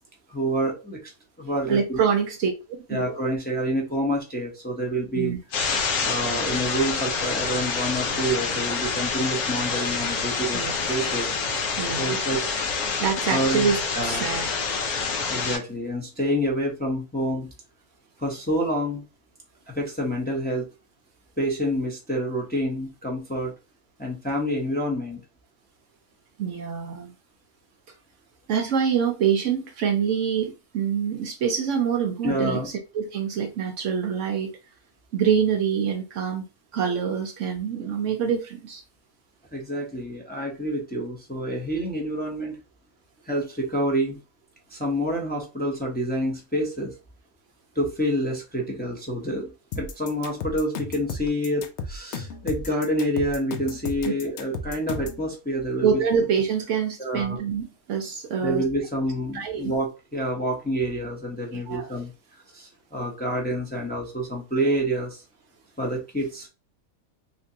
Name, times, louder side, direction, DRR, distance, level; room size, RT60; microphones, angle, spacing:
voice 1, 0.3-1.1 1.4-2.0 2.9-5.3 6.0-10.6 10.9-11.3 12.0-12.4 13.3-13.7 13.9-14.3 15.3-17.5 18.2-19.0 19.7-20.7 21.4-23.5 24.0-25.2 32.2-32.7 39.5-42.6 43.3-44.2 44.7-46.9 47.7-49.5 49.8-55.9 57.0-57.4 58.4-65.2 65.8-66.5, equal, 10° left, 0.7 m, -27 dB
voice 2, 1.7-2.5 3.1-3.2 5.1-5.4 10.5-10.8 11.8-12.2 13.0-14.5 26.4-27.1 28.5-34.5 35.1-36.4 36.7-38.8 55.8-58.6 59.3-59.7 61.5-61.9, right 7 dB, 65° right, 0.8 m, -25 dB
sound 1, 5.5-15.6, left 5 dB, 90° left, 1.3 m, -27 dB
sound 2, 49.7-55.2, left 4 dB, 65° left, 0.8 m, -34 dB
3.4 x 2.9 x 2.8 m
omnidirectional pair, 1.5 m